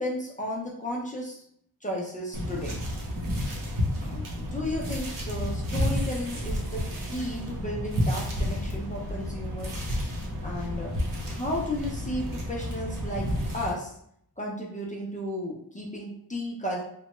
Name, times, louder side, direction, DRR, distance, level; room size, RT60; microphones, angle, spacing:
voice 1, 0.0-1.4 1.8-2.8 4.0-6.8 7.1-9.8 10.4-10.9 11.3-13.3 13.5-14.0 14.4-16.8, left 1 dB, 20° left, -3 dB, 0.4 m, -33 dB
sound 1, 2.3-13.7, equal, 60° right, 0.7 m, -31 dB
2.9 x 2.2 x 3.0 m, 0.70 s
wide cardioid pair, 175°, 38 cm